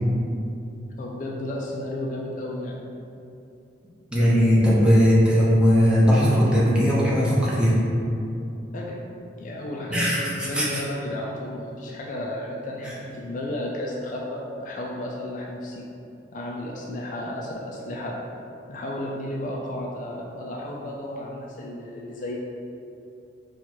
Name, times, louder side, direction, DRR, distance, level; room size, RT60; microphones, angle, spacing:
voice 1, 1.0-2.8 8.7-9.0 9.4-15.8 16.3-18.2 18.7-22.4, left 1 dB, 45° left, -2 dB, 0.3 m, -33 dB
voice 2, 4.1-7.8 9.9-10.7 12.8-12.9, equal, 5° right, -7 dB, 0.7 m, -19 dB
4.4 x 2.4 x 2.9 m, 2.7 s
head